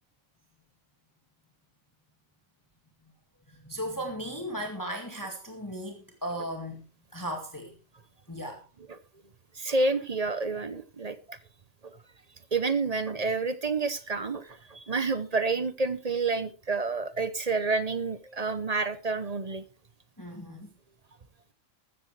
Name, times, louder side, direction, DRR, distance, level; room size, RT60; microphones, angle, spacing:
voice 1, 3.5-6.8 7.1-7.8 8.3-8.7 20.2-20.7, equal, 15° left, 2.2 m, -36 dB
voice 2, 9.6-11.4 12.5-19.6, right 3 dB, 35° right, 0.9 m, -29 dB
14.5 x 14.0 x 3.3 m
omnidirectional pair, 1.4 m